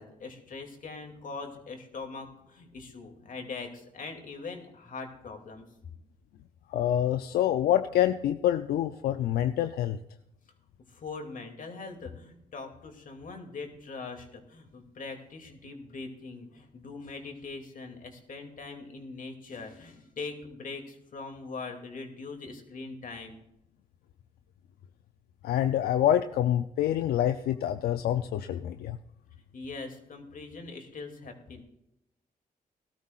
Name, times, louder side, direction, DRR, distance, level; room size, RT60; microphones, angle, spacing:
voice 1, 0.0-5.6 10.9-23.4 29.5-31.6, left 4 dB, 60° left, 4 dB, 2.5 m, -42 dB
voice 2, 6.7-10.0 25.4-29.0, left 11 dB, 90° left, 10 dB, 0.5 m, -26 dB
18.0 x 12.5 x 2.4 m, 0.85 s
cardioid pair, 70°, 16 cm